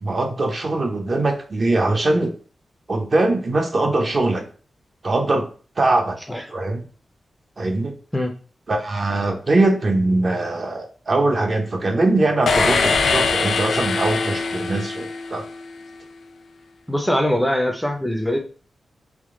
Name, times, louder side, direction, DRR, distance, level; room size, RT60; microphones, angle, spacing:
voice 1, 0.0-2.3 2.9-4.5 5.0-5.5 5.8-6.2 6.5-6.8 7.6-7.9 8.7-15.4, right 2 dB, 35° right, 3 dB, 0.6 m, -21 dB
sound 1, 12.5-15.6, left 4 dB, 70° left, 0.4 m, -22 dB
voice 2, 16.9-18.4, left 1 dB, 5° left, 2 dB, 0.5 m, -22 dB
3.5 x 3.3 x 3.6 m, 0.40 s
wide cardioid pair, 180°, 0 cm